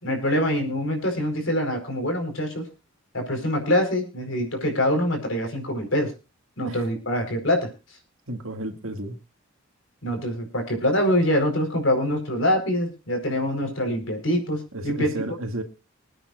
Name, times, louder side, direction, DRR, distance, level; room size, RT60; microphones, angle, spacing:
voice 1, 0.0-2.7 3.1-6.1 6.6-7.7 10.0-15.1, left 1 dB, 65° left, 4 dB, 4.6 m, -24 dB
voice 2, 8.3-9.2 14.7-15.6, right 1 dB, 80° right, 5 dB, 2.2 m, -32 dB
26.0 x 9.0 x 2.5 m, 0.29 s
head